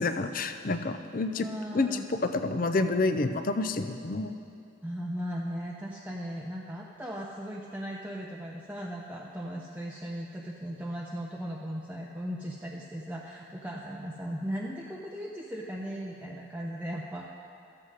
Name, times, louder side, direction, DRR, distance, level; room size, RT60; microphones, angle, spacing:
voice 1, 0.0-1.5 1.7-4.4, left 3 dB, 45° left, 8 dB, 0.5 m, -28 dB
voice 2, 1.3-2.0 4.8-17.3, equal, 10° right, -3 dB, 0.5 m, -37 dB
14.0 x 7.7 x 4.8 m, 2.5 s
head